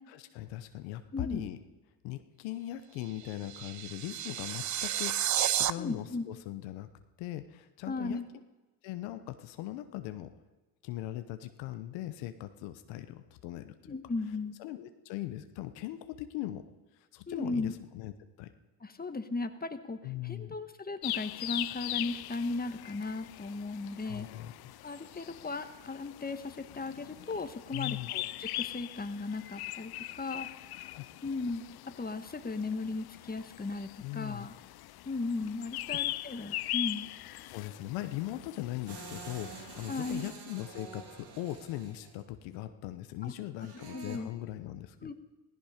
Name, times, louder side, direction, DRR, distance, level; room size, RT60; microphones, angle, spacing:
voice 1, 0.1-1.6 2.0-6.9 7.2-8.2 8.8-10.3 10.8-13.9 14.6-16.6 17.1-18.1 18.4-18.5 20.0-20.5 24.0-24.8 27.7-28.1 30.4-30.5 30.9-31.2 34.0-34.5 35.9-36.0 37.5-45.1, left 14 dB, 85° left, 9 dB, 0.9 m, -40 dB
voice 2, 1.1-1.5 5.8-6.3 7.9-8.2 13.9-14.6 17.3-17.7 18.8-24.3 24.8-30.7 31.2-31.6 32.0-34.5 35.0-37.1 39.9-40.3 43.2-43.3 43.9-44.3 45.0-45.1, left 3 dB, 20° left, 8 dB, 1.5 m, -36 dB
sound 1, 3.0-5.7, right 11 dB, 40° right, 0.6 m, -31 dB
sound 2, 21.0-40.3, left 16 dB, 60° left, 0.6 m, -41 dB
sound 3, 38.9-42.2 43.6-44.2, right 5 dB, 60° right, 2.6 m, -47 dB
16.5 x 15.5 x 5.1 m, 1.2 s
supercardioid pair, 60°, 43 cm